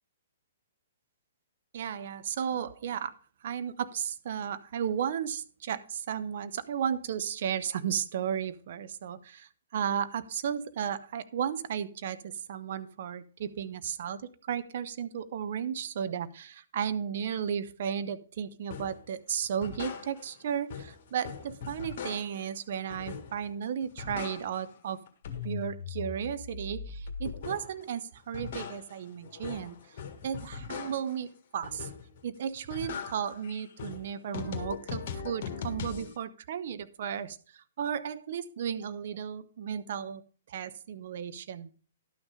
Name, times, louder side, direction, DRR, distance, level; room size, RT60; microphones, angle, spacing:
voice 1, 1.7-3.1 3.4-25.0 25.4-29.8 30.2-31.9 32.2-37.4 37.8-40.2 40.5-41.7, right 8 dB, 50° right, 11 dB, 0.7 m, -34 dB
sound 1, 18.7-19.0 19.4-20.4 20.7-22.5 22.9-23.5 23.8-24.8 25.1-27.8 28.2-31.2 31.6-32.2 32.5-36.1, left 6 dB, 40° left, 1.7 m, -40 dB
11.5 x 6.1 x 5.0 m, 0.39 s
figure-of-eight pair, 115°, 0 cm